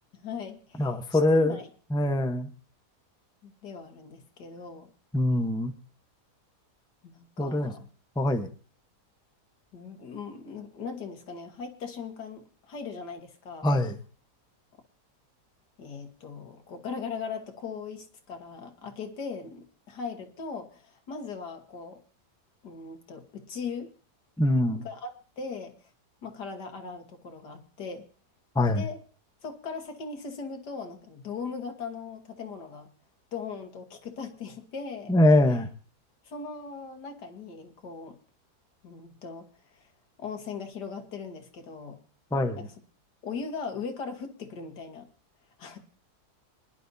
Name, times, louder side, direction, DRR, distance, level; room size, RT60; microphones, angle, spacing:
voice 1, 0.1-1.7 3.4-4.9 7.0-7.9 9.7-13.7 15.8-22.0 22.6-23.9 24.7-25.1 25.4-25.7 26.2-28.0 28.7-29.0 29.4-32.9 33.3-35.1 36.2-38.2 38.8-39.5 39.7-39.9 40.2-42.0 42.6-42.7 43.2-45.1 45.6-45.8, left 5 dB, 85° left, 5 dB, 2.1 m, -39 dB
voice 2, 0.8-1.6 1.9-2.5 5.1-5.7 7.4-7.7 8.2-8.5 13.6-14.0 24.4-24.8 28.5-28.8 35.1-35.7 42.3-42.6, left 1 dB, 5° left, 6 dB, 0.7 m, -23 dB
24.5 x 11.0 x 2.8 m, 0.39 s
omnidirectional pair, 1.7 m